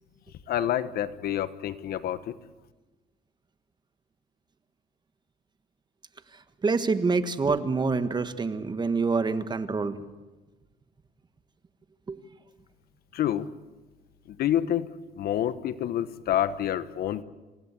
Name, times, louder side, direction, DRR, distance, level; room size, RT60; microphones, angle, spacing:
voice 1, 0.5-2.4 13.1-13.5 14.3-14.9 15.2-17.2, left 11 dB, 65° left, 14 dB, 1.2 m, -28 dB
voice 2, 6.6-9.9 12.1-12.2, right 4 dB, 25° right, 11 dB, 1.5 m, -26 dB
28.5 x 16.5 x 8.4 m, 1.2 s
cardioid pair, 110°, 17 cm